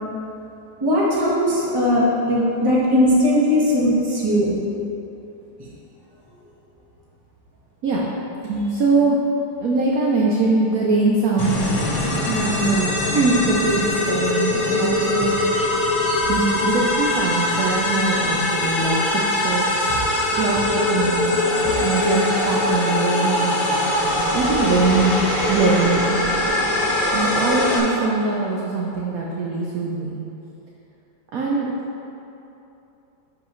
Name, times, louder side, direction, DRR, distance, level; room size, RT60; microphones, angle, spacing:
voice 1, 0.8-4.5 15.2-15.3 16.0-16.3 19.9-20.0, left 1 dB, 15° right, -6 dB, 1.0 m, -19 dB
voice 2, 8.4-9.2 9.6-11.7 12.2-15.4 16.3-19.0 19.3-19.9 20.3-21.4 21.6-23.7 24.3-25.2 25.5-26.0 27.1-30.1 31.3-31.7, right 3 dB, 65° right, -3 dB, 0.9 m, -22 dB
sound 1, 11.4-27.8, left 1 dB, 90° left, 2.0 m, -22 dB
10.5 x 5.1 x 3.1 m, 3.0 s
omnidirectional pair, 2.1 m